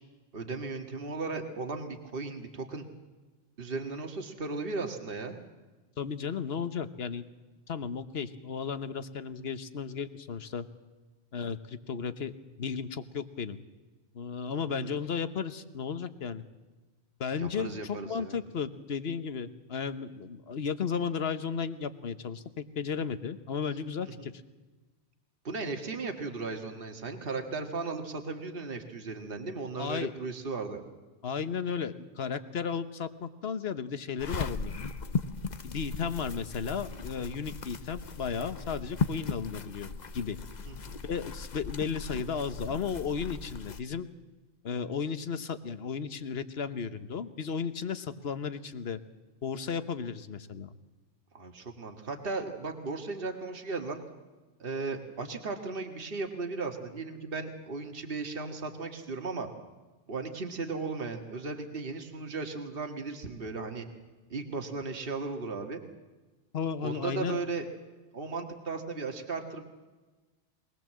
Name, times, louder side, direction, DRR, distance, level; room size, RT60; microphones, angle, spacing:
voice 1, 0.3-2.8 3.6-5.4 14.5-15.0 17.4-18.4 24.2-24.3 25.4-30.8 40.7-41.0 51.3-54.0 54.6-59.5 60.1-63.9 64.3-65.8 66.8-67.7 68.1-69.6, right 3 dB, 50° right, 5 dB, 1.9 m, -36 dB
voice 2, 6.0-7.2 7.7-10.7 11.3-12.3 12.6-13.6 14.1-16.4 17.2-24.3 29.8-30.1 31.2-34.7 35.6-39.9 40.1-40.4 41.0-44.1 44.6-49.0 49.4-50.7 66.5-67.4, left 6 dB, 60° left, 11 dB, 1.3 m, -34 dB
sound 1, 34.2-43.8, left 5 dB, 45° left, 0.8 m, -37 dB
22.5 x 19.0 x 7.5 m, 1.2 s
omnidirectional pair, 1.2 m